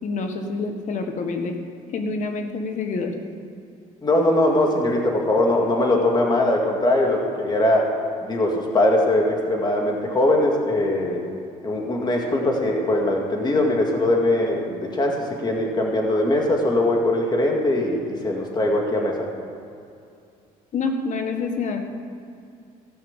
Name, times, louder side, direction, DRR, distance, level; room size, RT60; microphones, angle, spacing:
voice 1, 0.0-1.6 1.9-3.1 20.7-21.8, left 4 dB, 55° left, 4 dB, 1.7 m, -27 dB
voice 2, 4.0-7.9 8.2-11.2 11.6-19.3, left 1 dB, 30° left, 0 dB, 2.1 m, -21 dB
16.0 x 5.7 x 7.4 m, 2.5 s
cardioid pair, 100°, 15 cm